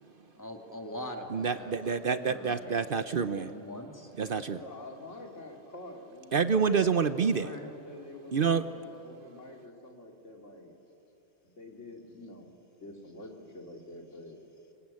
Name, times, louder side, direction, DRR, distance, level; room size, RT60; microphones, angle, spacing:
voice 1, 0.4-3.0 3.3-4.1 7.4-7.7, left 1 dB, 15° left, 3 dB, 2.4 m, -43 dB
voice 2, 1.3-3.5 4.2-4.6 6.3-7.5 8.3-8.6, right 6 dB, 55° right, 11 dB, 0.9 m, -27 dB
voice 3, 4.5-6.8 7.5-10.8 11.6-12.5 12.8-14.4, left 1 dB, 80° left, 1 dB, 3.3 m, -47 dB
26.0 x 24.5 x 8.5 m, 2.9 s
omnidirectional pair, 1.2 m